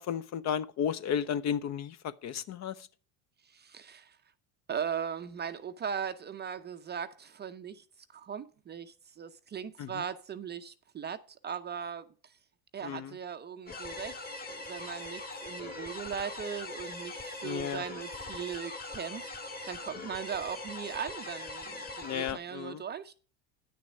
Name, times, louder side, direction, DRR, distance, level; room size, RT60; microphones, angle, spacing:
voice 1, 0.0-2.9 9.8-10.0 12.8-13.2 17.4-17.8 22.0-22.8, left 8 dB, 35° left, 0.5 m, -33 dB
voice 2, 3.4-4.2 4.7-7.8 8.1-12.4 12.7-19.2 19.7-23.1, right 7 dB, 25° right, 0.5 m, -39 dB
sound 1, 13.7-22.3, left 2 dB, 20° left, 1.6 m, -41 dB
9.6 x 6.7 x 5.1 m
hypercardioid pair, 95°, 47 cm